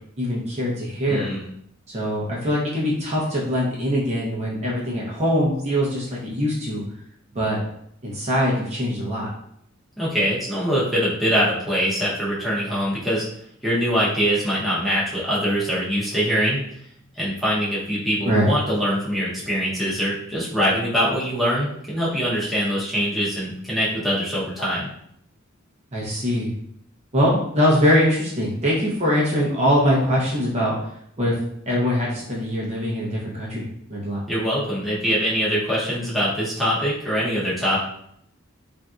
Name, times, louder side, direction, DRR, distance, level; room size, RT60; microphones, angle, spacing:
voice 1, 0.2-1.3 1.9-6.8 7.3-7.6 8.0-9.3 18.3-18.5 25.9-26.5 27.1-30.7 31.2-31.3 31.7-34.2, equal, 35° right, -5 dB, 0.7 m, -22 dB
voice 2, 1.0-1.4 10.0-13.3 13.6-16.6 17.2-24.9 34.3-37.8, equal, ahead, -9 dB, 0.8 m, -23 dB
3.3 x 2.6 x 2.4 m, 0.71 s
head